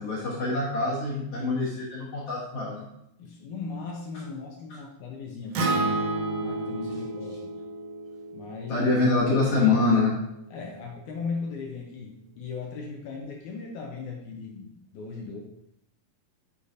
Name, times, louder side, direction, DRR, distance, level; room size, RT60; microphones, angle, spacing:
voice 1, 0.0-2.9 8.7-10.1, left 3 dB, 55° left, -6 dB, 1.8 m, -25 dB
voice 2, 3.2-5.9 6.4-7.5 8.3-8.9 10.5-15.4, left 4 dB, 80° left, 0 dB, 1.8 m, -37 dB
Acoustic guitar, 5.5-9.8, right 2 dB, 75° right, 1.6 m, -31 dB
9.5 x 5.0 x 2.6 m, 0.78 s
omnidirectional pair, 4.2 m